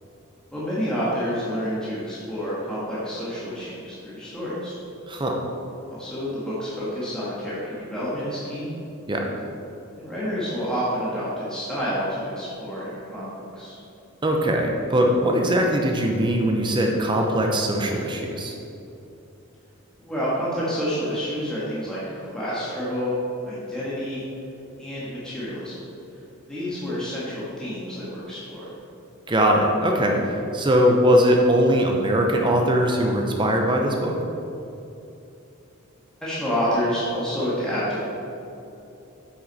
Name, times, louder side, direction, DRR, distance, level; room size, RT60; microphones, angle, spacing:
voice 1, 0.5-4.8 5.9-8.7 10.0-13.8 20.0-23.1 23.4-24.2 24.8-25.8 26.5-28.6 36.2-38.0, equal, 5° left, -10 dB, 1.5 m, -29 dB
voice 2, 5.1-5.4 9.1-9.2 14.2-18.5 29.3-34.2, equal, 20° right, 1 dB, 0.6 m, -21 dB
8.1 x 6.2 x 4.1 m, 2.8 s
head